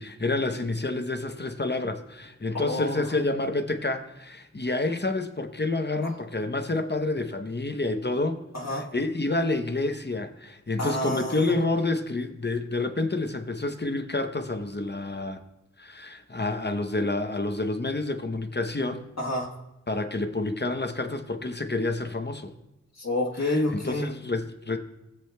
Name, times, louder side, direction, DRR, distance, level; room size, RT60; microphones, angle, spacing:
voice 1, 0.0-8.4 8.9-15.4 15.8-19.1 19.9-22.5 23.4-24.8, left 2 dB, 35° left, 7 dB, 0.8 m, -28 dB
voice 2, 2.5-3.2 6.0-6.1 8.5-8.9 10.8-11.5 19.2-19.6 22.9-24.1, left 1 dB, 55° left, -2 dB, 1.4 m, -29 dB
18.0 x 7.4 x 2.2 m, 0.95 s
wide cardioid pair, 40°, 31 cm